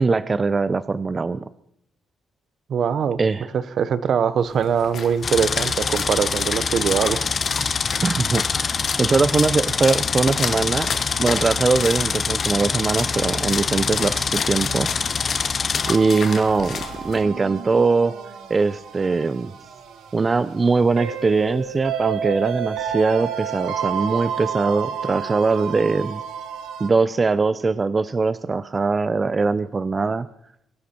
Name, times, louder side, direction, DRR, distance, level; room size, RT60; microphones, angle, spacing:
voice 1, 0.0-1.5 3.2-3.5 8.0-10.9 11.2-14.9 15.9-18.1 18.5-19.5 20.1-26.2 26.8-30.3, right 4 dB, 30° right, 15 dB, 0.5 m, -21 dB
voice 2, 2.7-3.2 3.8-7.3 7.6-7.7, right 7 dB, 60° right, 15 dB, 0.9 m, -22 dB
Splash splatter, 4.5-17.2, left 6 dB, 60° left, 2.2 m, -34 dB
sound 1, 5.2-16.0, left 5 dB, 40° left, 1.0 m, -24 dB
sound 2, 15.8-26.9, right 7 dB, 85° right, 2.0 m, -31 dB
23.0 x 11.0 x 4.4 m, 0.74 s
cardioid pair, 90°, 0 cm